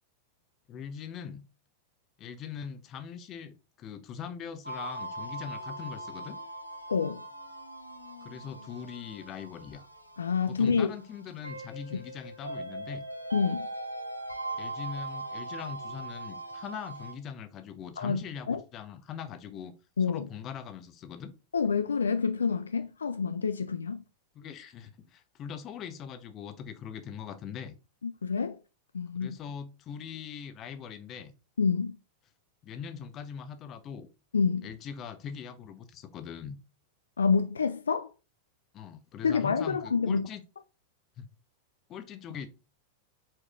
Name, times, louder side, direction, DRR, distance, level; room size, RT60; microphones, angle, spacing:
voice 1, 0.7-1.5 2.2-6.4 8.2-9.9 10.5-13.0 14.6-19.7 20.1-21.3 24.3-27.8 29.1-31.3 32.6-34.1 34.6-36.6 38.7-40.4 41.2-41.3 41.9-42.5, left 7 dB, 30° left, 0.7 m, -41 dB
sound 1, 4.6-17.1, right 2 dB, 85° right, 0.7 m, -40 dB
voice 2, 6.9-7.2 10.2-10.9 13.3-13.7 18.0-18.2 18.5-18.6 20.0-20.2 21.5-24.0 28.0-28.6 28.9-29.3 31.6-32.0 34.3-34.7 37.2-38.1 39.2-40.3, left 5 dB, 70° left, 0.3 m, -27 dB
4.8 x 4.5 x 2.4 m
figure-of-eight pair, 90°, 0 cm